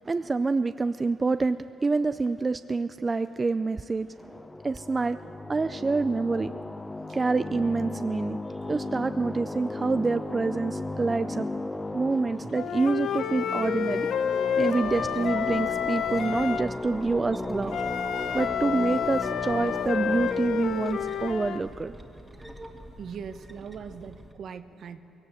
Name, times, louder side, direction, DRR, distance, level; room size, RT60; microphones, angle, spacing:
voice 1, 0.1-4.1 4.6-5.2 5.5-6.5 7.1-8.4 8.7-11.5 11.9-14.1 14.6-17.8 18.3-22.0, right 3 dB, 25° right, 11 dB, 0.4 m, -27 dB
sound 1, 4.2-22.3, left 2 dB, 15° left, 0.7 m, -36 dB
Wind instrument woodwind instrument, 12.5-16.7 17.7-21.6, left 8 dB, 70° left, 0.7 m, -29 dB
sound 2, 14.8-24.3, right 1 dB, 10° right, 1.9 m, -47 dB
voice 2, 23.0-25.0, right 6 dB, 60° right, 10 dB, 1.0 m, -40 dB
20.5 x 17.5 x 7.8 m, 2.9 s
cardioid pair, 90°, 0 cm